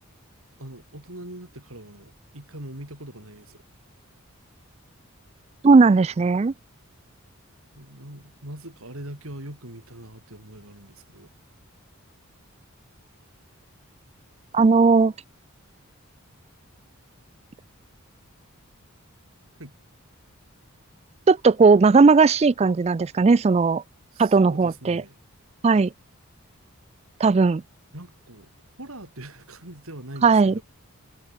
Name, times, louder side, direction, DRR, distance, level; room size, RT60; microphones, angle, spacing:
voice 1, 0.6-3.6 7.7-11.3 19.6-19.7 24.1-25.2 27.9-28.5 28.8-30.6, right 1 dB, 75° right, 5.8 m, -41 dB
voice 2, 5.6-6.5 14.5-15.1 21.3-23.8 24.2-25.0 25.6-25.9 27.2-27.6 30.2-30.5, right 4 dB, 30° right, 0.3 m, -17 dB
head